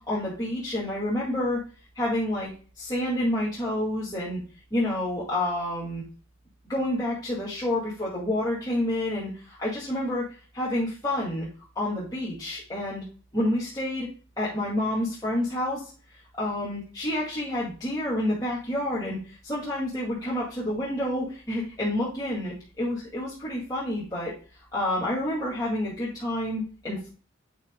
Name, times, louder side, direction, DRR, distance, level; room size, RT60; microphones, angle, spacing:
voice 1, 0.0-1.6 2.0-2.5 2.8-4.4 4.7-6.0 6.7-10.3 10.5-11.5 11.8-13.0 13.3-14.1 14.4-15.8 16.4-24.3 24.7-27.1, left 1 dB, 20° left, -8 dB, 2.0 m, -29 dB
7.9 x 6.4 x 2.2 m, 0.37 s
head